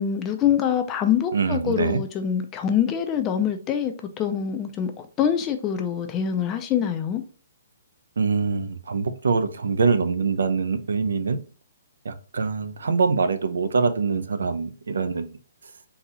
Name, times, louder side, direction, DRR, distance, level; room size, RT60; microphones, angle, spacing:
voice 1, 0.0-7.2, left 8 dB, 15° left, 0.4 m, -25 dB
voice 2, 1.3-2.0 8.2-11.4 12.0-15.4, right 4 dB, 85° right, 0.6 m, -24 dB
4.0 x 2.8 x 4.0 m
hypercardioid pair, 175°, 0 cm